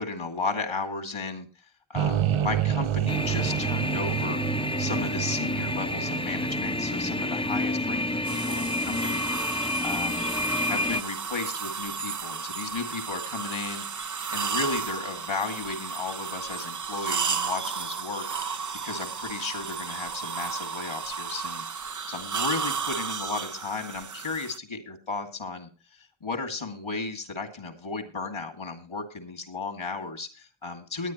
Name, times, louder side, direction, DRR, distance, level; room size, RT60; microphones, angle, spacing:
voice 1, 0.0-1.5 1.9-4.4 4.8-10.3 10.7-25.7 26.2-31.1, left 3 dB, 80° left, 6 dB, 2.4 m, -34 dB
sound 1, 1.9-9.1, right 10 dB, 80° right, 0.6 m, -30 dB
sound 2, 3.1-11.0, left 2 dB, 10° left, 0.7 m, -29 dB
sound 3, 8.2-24.6, right 6 dB, 40° right, 0.6 m, -33 dB
20.0 x 9.4 x 3.0 m, 0.33 s
wide cardioid pair, 45°, 48 cm